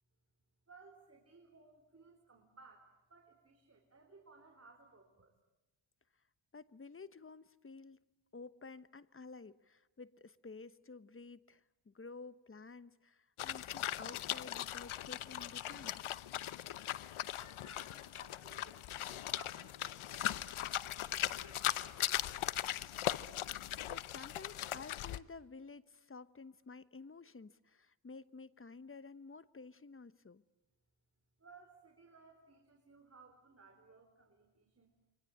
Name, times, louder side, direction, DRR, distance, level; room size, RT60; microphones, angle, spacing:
voice 1, 0.7-5.3 17.4-20.6 21.0-22.7 31.4-34.9, right 4 dB, 30° right, 3 dB, 4.3 m, -61 dB
voice 2, 6.5-8.0 8.3-16.0 23.9-30.4, left 4 dB, 25° left, 15 dB, 1.1 m, -52 dB
sound 1, 13.4-25.2, left 12 dB, 75° left, 0.9 m, -39 dB
28.0 x 24.5 x 8.6 m, 1.0 s
cardioid pair, 80°, 50 cm